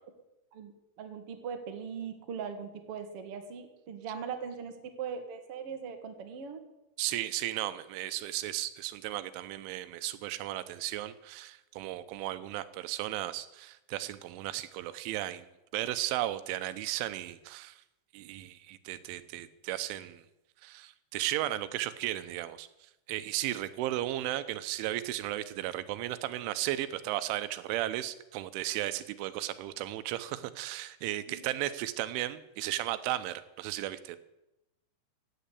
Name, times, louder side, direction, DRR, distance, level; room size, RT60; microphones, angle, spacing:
voice 1, 0.5-4.7 5.0-6.6 31.3-31.4, right 6 dB, 60° right, 5 dB, 1.5 m, -40 dB
voice 2, 7.0-15.5 15.7-17.8 18.1-20.2 20.6-22.7 23.1-34.2, right 14 dB, 90° right, 13 dB, 3.3 m, -35 dB
16.0 x 9.4 x 8.3 m, 0.92 s
omnidirectional pair, 5.4 m